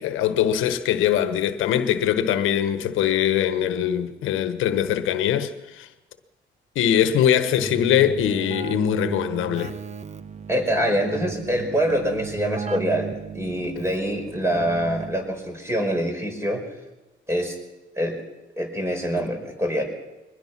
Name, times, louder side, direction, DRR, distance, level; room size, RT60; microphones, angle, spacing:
voice 1, 0.0-5.9 6.7-9.7, left 10 dB, 85° left, 1.3 m, -22 dB
Keyboard (musical), 7.6-15.4, right 6 dB, 35° right, 1.1 m, -35 dB
voice 2, 10.5-13.1 13.3-16.6 17.3-17.6 18.0-18.2 18.6-19.8, equal, 15° right, 5.2 m, -25 dB
22.5 x 19.5 x 6.0 m
cardioid pair, 90°, 20 cm